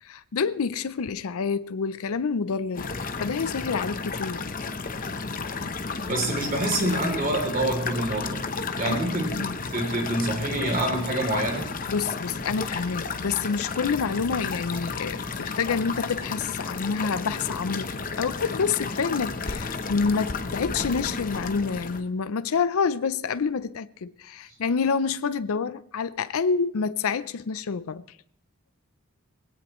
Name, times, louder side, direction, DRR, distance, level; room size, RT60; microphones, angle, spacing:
voice 1, 0.0-4.4 8.8-9.5 11.9-17.9 18.2-28.0, left 5 dB, 70° left, 0.5 m, -28 dB
sound 1, 2.7-22.0, left 4 dB, 40° left, 0.8 m, -32 dB
voice 2, 6.0-8.4 8.8-9.4 9.7-11.7, right 1 dB, 40° right, 3.1 m, -26 dB
20.5 x 16.5 x 3.1 m
head